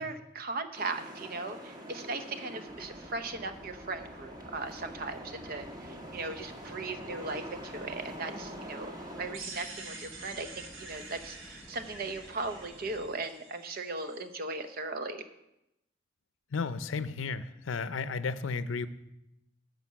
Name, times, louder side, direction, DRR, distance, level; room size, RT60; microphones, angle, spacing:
voice 1, 0.0-8.9 9.2-10.5 10.8-15.2, right 3 dB, 50° right, 8 dB, 0.8 m, -38 dB
sound 1, 0.7-9.4, equal, 20° right, 1.3 m, -45 dB
sound 2, 2.7-13.1, equal, 10° left, 0.7 m, -53 dB
sound 3, 9.3-14.2, right 3 dB, 85° right, 1.7 m, -47 dB
voice 2, 16.5-18.9, left 4 dB, 80° left, 13 dB, 0.6 m, -33 dB
11.0 x 5.2 x 7.4 m, 0.89 s
head